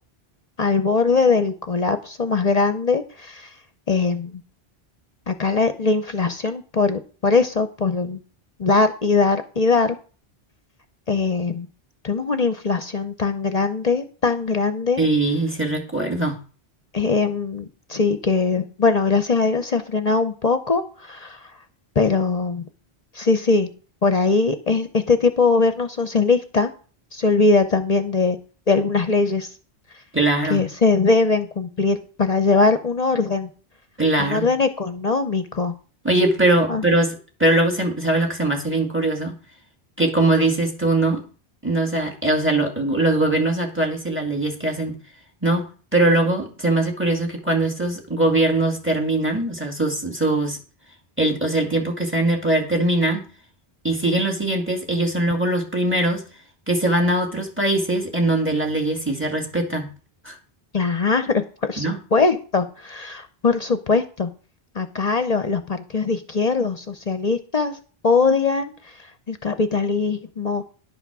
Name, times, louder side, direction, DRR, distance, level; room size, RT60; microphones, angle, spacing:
voice 1, 0.6-3.5 3.9-4.4 5.3-8.2 8.6-10.0 11.1-11.7 12.0-15.0 16.9-21.4 22.0-22.6 23.1-23.7 24.0-26.7 27.1-28.4 28.7-29.5 30.5-33.5 34.2-35.7 36.7-36.8 60.7-64.3 64.8-67.8 68.0-68.7 69.3-70.6, left 4 dB, 45° left, 9 dB, 0.8 m, -21 dB
voice 2, 15.0-16.4 30.1-30.6 34.0-34.5 36.0-39.3 40.0-41.3 41.6-45.0 45.4-50.6 51.2-53.3 53.8-56.3 56.7-59.9 60.2-60.4 61.8-62.0, right 2 dB, 10° right, 3 dB, 2.0 m, -21 dB
11.0 x 5.9 x 6.0 m, 0.38 s
omnidirectional pair, 1.0 m